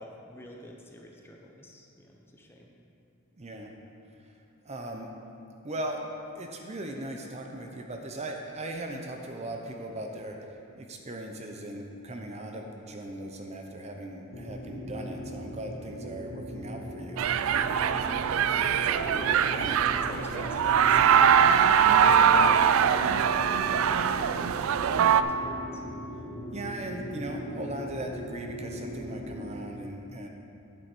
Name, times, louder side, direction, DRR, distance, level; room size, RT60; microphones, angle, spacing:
voice 1, 0.0-2.7 18.1-21.4 21.9-23.2 23.4-24.5 24.8-25.8, equal, 10° left, 0 dB, 0.7 m, -46 dB
voice 2, 3.4-3.7 4.6-5.1 5.6-6.0 6.3-10.4 10.7-17.2 26.5-30.3, right 1 dB, 30° right, 2 dB, 0.6 m, -38 dB
sound 1, 14.3-29.5, equal, 50° left, 1.7 m, -39 dB
sound 2, 17.2-25.2, right 8 dB, 65° right, 0.3 m, -22 dB
9.1 x 7.9 x 4.4 m, 2.6 s
head